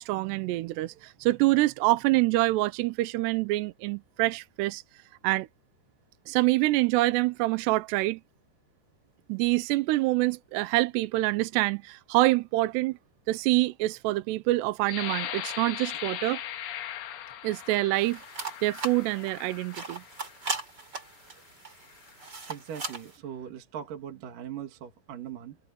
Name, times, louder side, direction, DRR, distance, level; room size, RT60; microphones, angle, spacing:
voice 1, 0.0-4.8 5.2-5.5 6.3-8.2 9.3-13.0 13.3-16.4 17.4-18.2 18.6-20.0, right 19 dB, 85° right, 2.9 m, -26 dB
sound 1, 14.8-20.5 21.1-21.3 21.8-22.2, left 11 dB, 70° left, 3.4 m, -39 dB
sound 2, 18.0-23.2, right 3 dB, 25° right, 4.3 m, -38 dB
voice 2, 22.5-25.6, right 9 dB, 55° right, 3.5 m, -40 dB
omnidirectional pair, 4.8 m